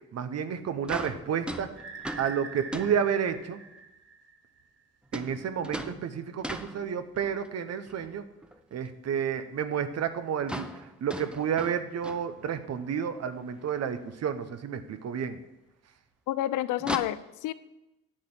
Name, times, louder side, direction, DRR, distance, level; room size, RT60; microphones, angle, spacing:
voice 1, 0.1-1.7 2.2-3.6 5.1-8.2 8.7-15.4, right 7 dB, 55° right, 10 dB, 0.9 m, -31 dB
sound 1, 0.5-0.6 0.8-3.5 5.1-7.5 7.9-8.6 8.9-9.0 9.3-9.4 9.7-9.8 10.0-10.1 10.4-12.8 13.2-13.3 13.6-13.7 14.8-14.9 16.8-17.0, equal, 5° right, 0.7 m, -39 dB
sound 2, 1.8-4.6, right 4 dB, 40° right, 1.5 m, -44 dB
voice 2, 16.3-17.5, left 14 dB, 85° left, 15 dB, 0.5 m, -29 dB
10.0 x 4.3 x 7.7 m, 0.94 s
cardioid pair, 90°, 30 cm